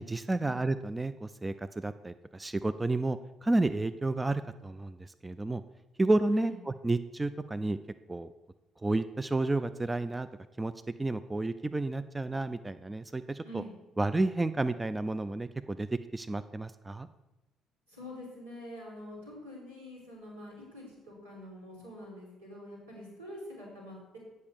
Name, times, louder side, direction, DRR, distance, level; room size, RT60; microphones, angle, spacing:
voice 1, 0.0-5.6 6.0-7.8 8.1-8.3 8.8-10.3 10.6-10.7 11.0-13.6 14.0-17.1, right 2 dB, 15° right, 12 dB, 0.4 m, -31 dB
voice 2, 17.9-24.2, left 1 dB, 85° right, -4 dB, 3.5 m, -46 dB
8.4 x 5.4 x 6.5 m, 1.0 s
figure-of-eight pair, 50°, 0 cm